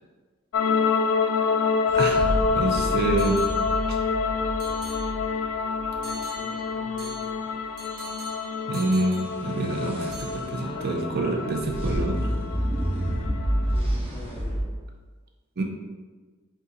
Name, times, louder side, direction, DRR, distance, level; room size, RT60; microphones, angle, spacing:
sound 1, 0.5-13.8, left 5 dB, 75° left, 0.3 m, -27 dB
sound 2, 1.9-6.0 9.3-14.6, equal, 30° right, 0.9 m, -30 dB
voice 1, 1.9-2.3 2.5-3.4 8.7-12.3 15.6-15.7, right 2 dB, 50° right, 2 dB, 0.5 m, -27 dB
sound 3, 2.0-2.7 3.2-4.2 4.6-5.5 6.0-9.8 10.1-10.7, right 2 dB, 90° right, 1.2 m, -44 dB
voice 2, 2.6-3.3 6.0-7.5 10.6-12.0 13.7-14.7, left 1 dB, 20° left, -1 dB, 0.6 m, -42 dB
5.5 x 2.3 x 3.8 m, 1.4 s
head